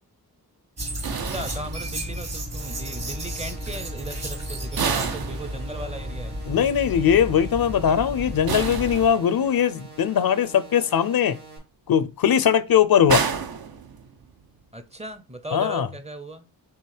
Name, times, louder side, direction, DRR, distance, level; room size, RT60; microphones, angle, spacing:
sound 1, 0.8-9.1, equal, 40° right, 1.2 m, -33 dB
voice 1, 1.0-6.3 14.7-16.5, right 1 dB, 15° right, 0.6 m, -37 dB
sound 2, 1.0-2.3 4.8-6.1 8.5-9.6 13.1-14.4, right 6 dB, 65° right, 0.6 m, -29 dB
sound 3, 2.6-11.6, right 4 dB, 80° right, 2.6 m, -45 dB
voice 2, 6.5-11.4 11.9-13.3 15.5-15.9, left 8 dB, 65° left, 0.5 m, -20 dB
4.6 x 2.9 x 3.2 m
wide cardioid pair, 90°, 39 cm